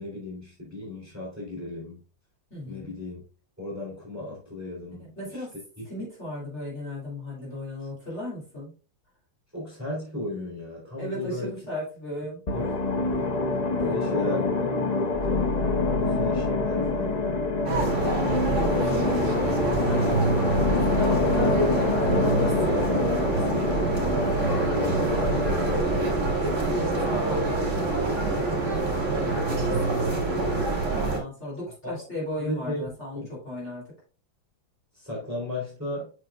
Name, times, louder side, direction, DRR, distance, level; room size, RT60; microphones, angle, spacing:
voice 1, 0.0-2.0 2.7-3.2 3.6-5.1 5.3-5.4 9.5-11.6 12.5-15.6 16.0-17.2 25.6-26.2 31.8-31.9 32.4-32.9 33.1-33.3 34.9-36.1, left 1 dB, 10° right, 3.3 m, -35 dB
voice 2, 2.5-2.9 5.0-5.5 5.9-8.7 11.0-12.8 13.8-14.3 18.0-20.1 20.7-25.8 26.4-27.9 28.2-30.0 30.9-33.9, left 1 dB, 35° left, 3.5 m, -36 dB
sound 1, 12.5-25.8, left 3 dB, 80° left, 0.3 m, -26 dB
sound 2, 17.7-31.2, right 3 dB, 40° right, 2.4 m, -26 dB
8.3 x 6.3 x 2.4 m
omnidirectional pair, 2.1 m